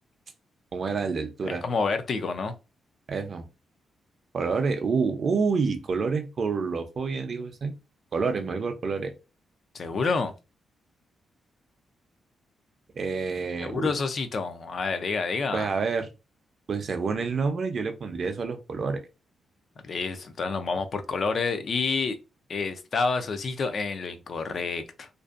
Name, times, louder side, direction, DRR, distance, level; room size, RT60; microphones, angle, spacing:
voice 1, 0.7-1.6 3.1-3.4 4.3-7.7 8.1-9.1 12.9-13.9 15.5-16.1 16.7-19.0, right 5 dB, 45° right, 0.4 m, -28 dB
voice 2, 1.4-2.5 9.7-10.3 13.6-15.7 19.8-22.2 22.5-25.1, left 4 dB, 45° left, 0.3 m, -28 dB
2.5 x 2.2 x 2.4 m
cardioid pair, 130°, 0 cm